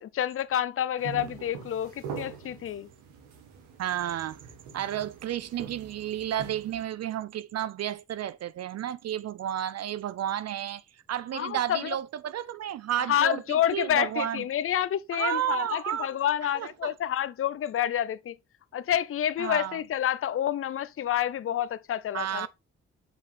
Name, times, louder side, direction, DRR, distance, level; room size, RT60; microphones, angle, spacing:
voice 1, 0.0-2.9 11.3-11.9 13.1-18.4 18.7-22.5, left 10 dB, 45° left, 0.6 m, -28 dB
sound 1, 1.0-6.8, right 7 dB, 85° right, 1.4 m, -43 dB
voice 2, 3.8-4.4 4.7-10.8 11.1-13.4 13.7-14.4 15.1-16.1 16.5-16.9 19.4-19.8 22.1-22.5, right 11 dB, 60° right, 0.5 m, -32 dB
6.3 x 5.0 x 3.4 m
supercardioid pair, 45°, 30 cm